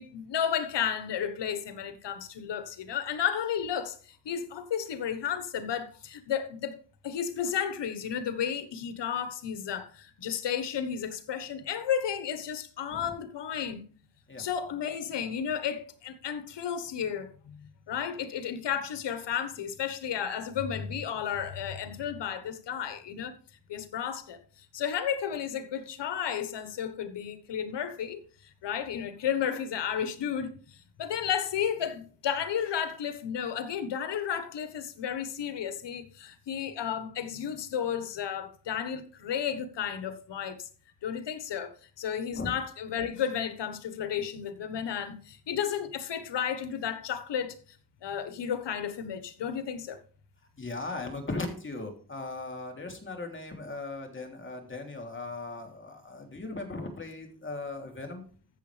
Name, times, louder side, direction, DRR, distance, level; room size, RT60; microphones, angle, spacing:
voice 1, 0.0-6.7 7.0-13.8 14.4-23.3 23.7-24.4 24.7-28.2 28.6-40.7 41.0-47.6 48.0-50.0, left 8 dB, 80° left, 1.4 m, -33 dB
voice 2, 50.6-58.2, left 3 dB, 30° left, 3.3 m, -38 dB
14.0 x 7.2 x 3.4 m
cardioid pair, 80°, 41 cm